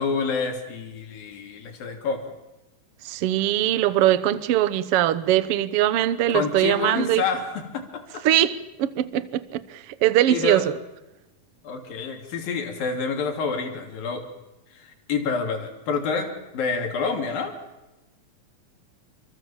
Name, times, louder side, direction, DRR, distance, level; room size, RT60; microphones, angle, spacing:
voice 1, 0.0-2.3 6.3-8.2 10.3-10.6 11.6-14.2 14.7-17.5, left 5 dB, 75° left, 4.8 m, -28 dB
voice 2, 3.0-7.2 8.2-10.7, right 13 dB, 75° right, 1.3 m, -22 dB
29.0 x 24.0 x 7.4 m
omnidirectional pair, 4.1 m